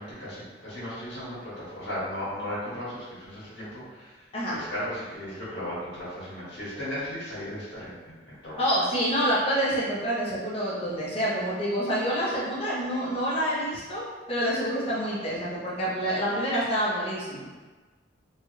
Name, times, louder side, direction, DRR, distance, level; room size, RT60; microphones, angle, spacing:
voice 1, 0.0-4.2 4.5-8.6, equal, 70° left, -11 dB, 1.4 m, -36 dB
voice 2, 8.6-14.0 14.3-17.4, equal, 30° left, -7 dB, 1.0 m, -27 dB
3.0 x 2.5 x 3.1 m, 1.3 s
head